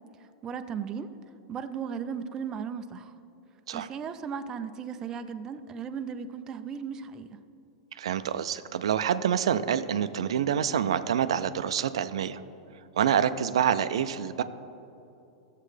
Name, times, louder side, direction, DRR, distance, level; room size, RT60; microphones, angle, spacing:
voice 1, 0.2-1.1 1.5-3.1 3.7-7.4, right 7 dB, 20° right, 9 dB, 0.4 m, -36 dB
voice 2, 8.0-12.4 13.0-14.4, right 9 dB, 90° right, 12 dB, 0.4 m, -27 dB
14.0 x 7.4 x 3.3 m, 2.9 s
supercardioid pair, 145°, 3 cm